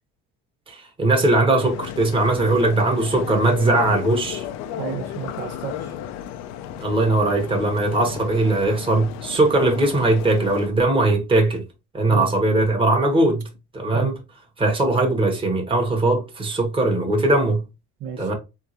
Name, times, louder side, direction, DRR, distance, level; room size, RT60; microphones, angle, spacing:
voice 1, 0.7-4.4 6.8-11.6 11.9-13.4 13.7-14.1 14.6-17.6 18.2-18.3, right 2 dB, 20° right, 1.5 m, -20 dB
sound 1, 1.6-10.7, left 10 dB, 65° left, 0.7 m, -34 dB
voice 2, 4.8-6.0 12.1-12.3 13.9-14.2 18.0-18.3, right 7 dB, 55° right, 1.4 m, -31 dB
3.9 x 3.6 x 3.0 m
cardioid pair, 125°, 29 cm